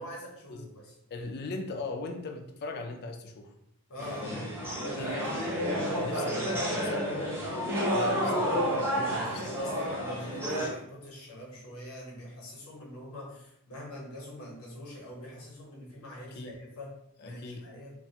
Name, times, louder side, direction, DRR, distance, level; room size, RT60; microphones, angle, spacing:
voice 1, 0.0-0.9 3.9-4.5 9.0-17.9, left 1 dB, 70° left, -3 dB, 0.9 m, -44 dB
voice 2, 1.1-3.5 4.1-9.4 16.3-16.6 17.2-17.7, left 3 dB, 45° left, 5 dB, 0.3 m, -40 dB
sound 1, 4.0-10.7, equal, 10° right, 0.5 m, -30 dB
2.4 x 2.2 x 2.7 m, 0.77 s
head